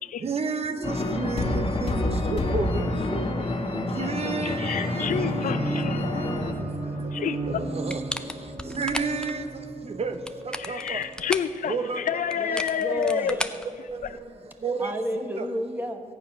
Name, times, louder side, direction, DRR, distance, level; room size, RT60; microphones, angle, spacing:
voice 1, 0.2-1.5 1.8-1.9 2.3-2.7 4.0-5.1 7.7-8.0 8.8-9.4 10.0-10.1 10.7-11.0 11.7-12.0 14.6-14.9 15.4-15.5, right 4 dB, 50° right, 9 dB, 0.9 m, -29 dB
sound 1, 0.8-6.5, left 2 dB, 45° left, 1.7 m, -28 dB
voice 2, 4.4-6.1 7.1-7.4 10.6-13.3, left 8 dB, 75° left, 12 dB, 0.5 m, -29 dB
sound 2, 5.0-12.4, right 2 dB, 65° right, 2.9 m, -35 dB
sound 3, 7.9-9.3 10.1-11.6 12.3-14.3, left 1 dB, 5° left, 0.6 m, -34 dB
voice 3, 12.3-13.5 14.8-16.0, equal, 15° right, 5 dB, 1.3 m, -31 dB
14.0 x 9.4 x 5.9 m, 2.1 s
cardioid pair, 95°, 14 cm